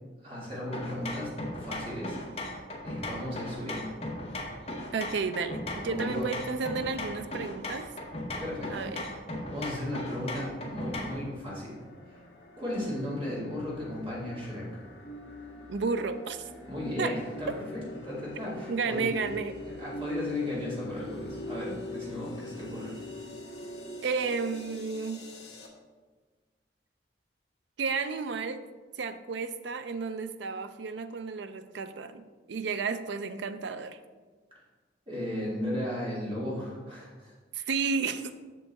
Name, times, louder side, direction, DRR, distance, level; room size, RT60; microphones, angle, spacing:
voice 1, 0.2-1.3 1.6-2.2 2.8-3.9 5.5-6.3 8.4-8.9 9.5-11.8 12.1-12.2 12.6-14.8 16.7-19.1 19.6-22.9 35.1-37.3, left 1 dB, 30° right, -6 dB, 2.1 m, -35 dB
sound 1, 0.7-11.3, left 1 dB, 30° left, 0.8 m, -38 dB
voice 2, 4.9-7.9 8.7-9.0 15.7-16.4 17.0-17.2 18.7-19.6 24.0-25.3 27.8-28.6 29.0-34.0 37.5-38.3, right 5 dB, 65° right, 10 dB, 0.4 m, -32 dB
sound 2, 10.7-25.7, left 2 dB, 60° left, 1.1 m, -43 dB
6.9 x 6.4 x 3.4 m, 1.4 s
head